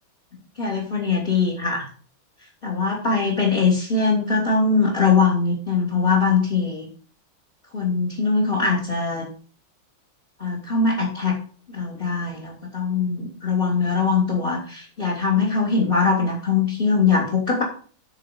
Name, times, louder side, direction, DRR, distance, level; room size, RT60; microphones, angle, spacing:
voice 1, 0.6-1.9 2.6-6.9 7.7-9.3 10.4-11.4 11.7-17.6, left 4 dB, 25° left, -1 dB, 2.6 m, -21 dB
13.0 x 4.6 x 5.2 m, 0.43 s
omnidirectional pair, 2.2 m